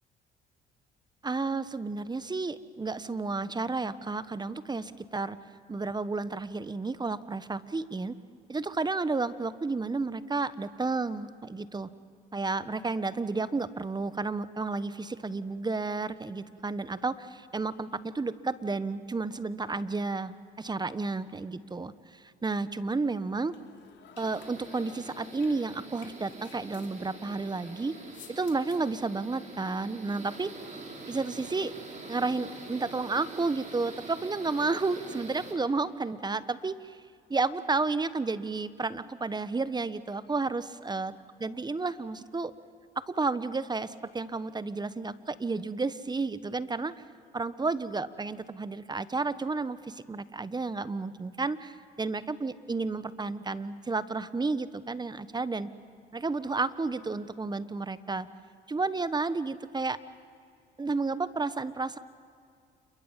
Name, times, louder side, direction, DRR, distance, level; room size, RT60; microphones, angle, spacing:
voice 1, 1.2-5.4 5.7-8.1 8.5-11.9 12.3-23.5 24.2-27.9 28.3-30.5 31.1-31.7 32.1-37.0 37.3-41.1 41.4-42.5 43.0-46.9 47.3-55.7 56.1-58.3 58.7-60.0 60.8-62.0, right 3 dB, 20° right, 15 dB, 1.1 m, -31 dB
sound 1, 23.5-29.0, left 7 dB, 70° left, 3.1 m, -54 dB
sound 2, 24.2-35.5, right 3 dB, 40° right, 5.9 m, -45 dB
28.5 x 23.0 x 7.5 m, 2.3 s
supercardioid pair, 75°, 19 cm